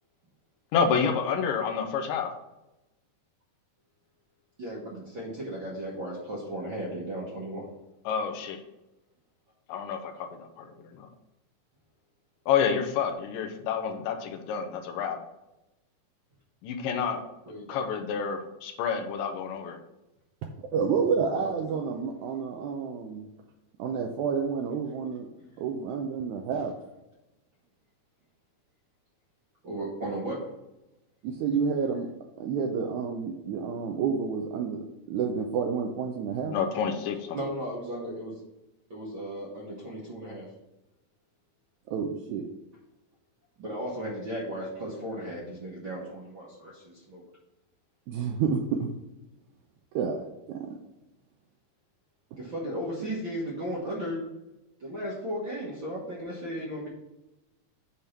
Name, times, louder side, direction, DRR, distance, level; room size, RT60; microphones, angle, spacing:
voice 1, 0.7-2.3 8.1-8.6 9.7-11.1 12.5-15.2 16.6-17.2 17.7-19.8 36.5-37.4, left 6 dB, 80° left, 5 dB, 2.5 m, -29 dB
voice 2, 4.6-7.7 17.4-17.8 21.3-21.9 26.5-26.6 29.6-30.4 37.3-38.4 38.9-40.5 43.6-47.2 52.4-54.2 54.8-56.9, equal, 50° right, -5 dB, 1.6 m, -35 dB
voice 3, 20.4-23.3 23.8-25.3 25.6-26.7 31.2-32.1 32.4-36.5 41.9-42.5 48.1-48.9 49.9-50.8, right 6 dB, 80° right, 2 dB, 1.8 m, -29 dB
8.3 x 3.6 x 5.7 m, 0.97 s
omnidirectional pair, 3.9 m